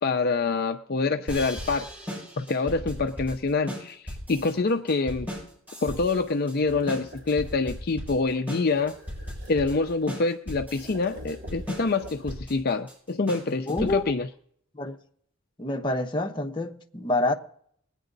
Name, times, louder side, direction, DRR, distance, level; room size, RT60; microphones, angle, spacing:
voice 1, 0.0-1.9 2.4-5.3 5.8-9.0 9.5-14.3, left 3 dB, 45° left, 0.5 m, -26 dB
sound 1, 1.3-14.2, equal, 5° right, 5.9 m, -37 dB
sound 2, 6.5-7.9 8.7-10.2 10.7-12.7, equal, 55° right, 2.9 m, -47 dB
voice 2, 13.7-14.1 14.7-15.0 15.6-17.3, left 2 dB, 20° left, 1.0 m, -27 dB
20.5 x 9.0 x 3.9 m
head